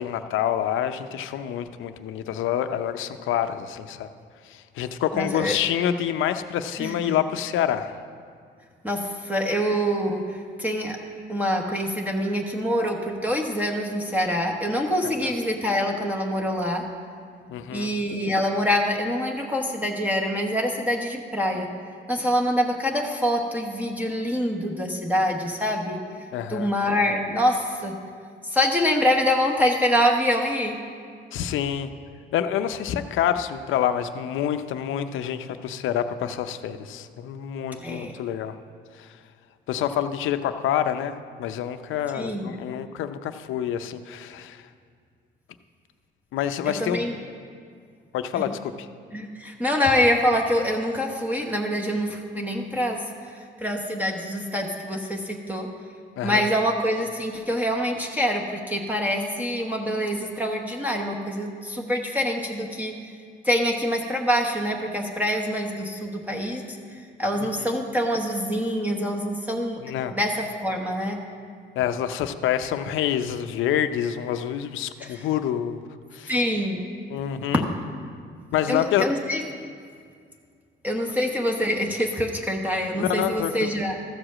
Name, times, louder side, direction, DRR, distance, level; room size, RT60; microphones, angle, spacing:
voice 1, 0.0-4.1 4.5-7.9 17.5-17.9 26.3-26.7 31.3-31.9 32.3-38.5 38.9-39.2 39.7-44.7 46.3-47.0 48.1-48.9 56.2-56.4 67.6-67.7 69.8-70.1 71.8-75.8 76.1-76.3 77.1-77.6 78.5-79.1 82.9-83.7, left 10 dB, 85° left, 9 dB, 0.6 m, -27 dB
voice 2, 5.1-5.6 6.8-7.0 8.8-11.0 11.3-16.8 17.7-21.7 22.1-26.0 26.5-27.9 28.4-30.8 37.8-38.1 42.1-42.5 46.7-47.1 48.4-48.5 49.1-53.0 53.6-55.7 56.2-62.9 63.4-66.6 67.2-69.8 70.1-71.2 75.0-75.2 76.3-76.9 78.7-79.4 80.8-84.1, equal, 10° right, 0 dB, 1.1 m, -25 dB
13.5 x 4.9 x 7.5 m, 2.2 s
cardioid pair, 90°, 20 cm